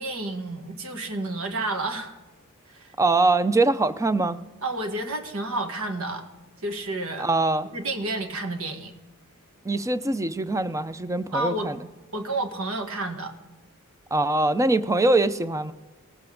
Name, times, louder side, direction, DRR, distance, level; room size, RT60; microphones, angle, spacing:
voice 1, 0.0-2.1 2.7-2.9 4.6-6.2 6.6-7.3 7.7-8.9 11.3-11.7 12.1-13.3, right 2 dB, 70° right, 5 dB, 1.6 m, -30 dB
voice 2, 3.0-4.4 7.2-7.7 9.6-11.8 14.1-15.7, right 2 dB, 15° right, 13 dB, 0.5 m, -23 dB
19.0 x 8.0 x 3.8 m, 1.2 s
head